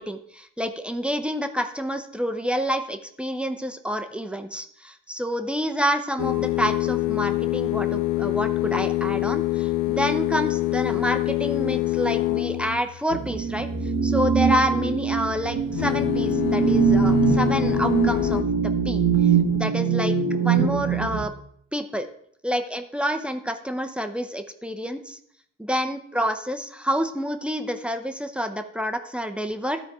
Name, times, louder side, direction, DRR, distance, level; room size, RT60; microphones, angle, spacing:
voice 1, 0.0-13.7 14.0-18.4 18.8-19.0 19.5-21.3 21.7-22.1 22.4-25.2 25.6-29.8, equal, 5° right, 8 dB, 0.8 m, -28 dB
sound 1, 6.2-13.0 15.7-18.4, left 18 dB, 75° left, 0.5 m, -25 dB
sound 2, 13.1-21.3, right 6 dB, 85° right, 1.3 m, -23 dB
13.0 x 4.3 x 4.8 m, 0.65 s
cardioid pair, 90°, 30 cm